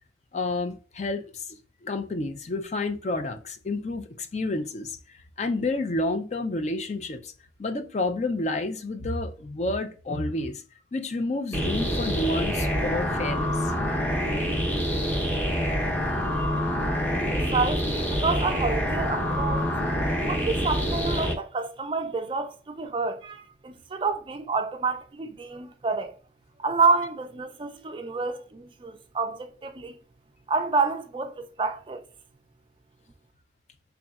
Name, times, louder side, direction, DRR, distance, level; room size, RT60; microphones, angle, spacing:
voice 1, 0.3-7.3 7.6-10.6 10.9-13.7, left 2 dB, 40° left, 0.4 m, -30 dB
sound 1, 11.5-21.3, equal, 10° left, 0.7 m, -26 dB
voice 2, 17.3-19.7 20.2-26.1 26.6-30.0 30.5-32.0, right 4 dB, 30° right, 0.3 m, -28 dB
4.0 x 3.4 x 2.3 m
head